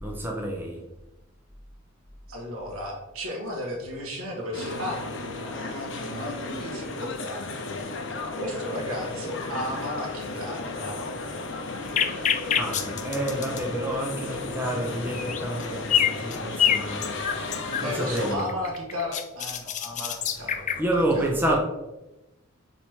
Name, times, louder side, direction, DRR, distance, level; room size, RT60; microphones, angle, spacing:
voice 1, 0.0-0.8 12.5-18.5 20.8-21.6, right 1 dB, 10° right, -1 dB, 0.8 m, -29 dB
voice 2, 2.3-5.0 5.4-7.7 8.3-11.0 17.8-20.8 21.1-21.3, left 1 dB, 80° right, 0 dB, 1.6 m, -34 dB
sound 1, 4.5-18.3, left 3 dB, 55° left, 0.8 m, -34 dB
sound 2, 12.0-13.6 14.5-14.7 15.1-15.6 15.9-17.9 18.2-20.8, left 9 dB, 35° left, 0.4 m, -26 dB
5.0 x 4.4 x 4.5 m, 0.99 s
head